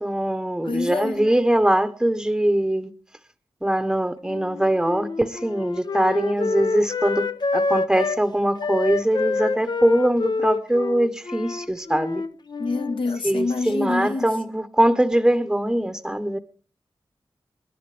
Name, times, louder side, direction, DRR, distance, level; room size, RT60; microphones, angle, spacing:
voice 1, 0.0-2.9 3.6-12.2 13.2-16.4, right 1 dB, 5° right, 1.0 m, -22 dB
voice 2, 0.6-1.3 12.6-14.2, left 3 dB, 75° left, 1.6 m, -26 dB
Wind instrument woodwind instrument, 4.2-8.2 8.6-13.0, left 4 dB, 55° left, 0.7 m, -27 dB
28.0 x 10.5 x 3.3 m
wide cardioid pair, 115°, 9 cm